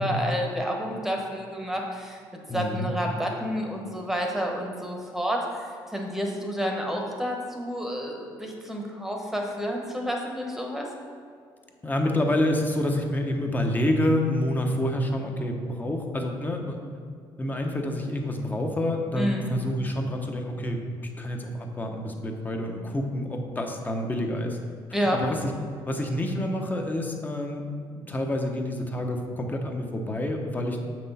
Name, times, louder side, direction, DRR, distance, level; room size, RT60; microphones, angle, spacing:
voice 1, 0.0-2.2 2.5-10.9 19.2-19.5 24.9-25.2, equal, 5° right, 1 dB, 1.1 m, -30 dB
voice 2, 2.5-2.9 11.8-16.9 17.4-24.6 24.9-25.5 25.9-27.6 28.0-30.8, left 1 dB, 20° left, 3 dB, 0.9 m, -28 dB
7.5 x 6.0 x 4.2 m, 2.2 s
cardioid pair, 110°, 9 cm